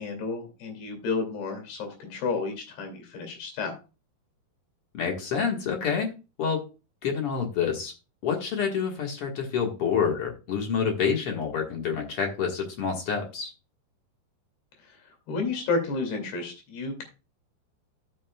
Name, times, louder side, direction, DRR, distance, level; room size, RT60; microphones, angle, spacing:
voice 1, 0.0-3.7 14.8-17.1, left 4 dB, 85° left, 4 dB, 4.7 m, -31 dB
voice 2, 4.9-6.7 7.0-7.9 8.2-13.5, left 6 dB, 50° left, 2 dB, 1.8 m, -28 dB
12.5 x 7.1 x 2.3 m, 0.30 s
omnidirectional pair, 4.6 m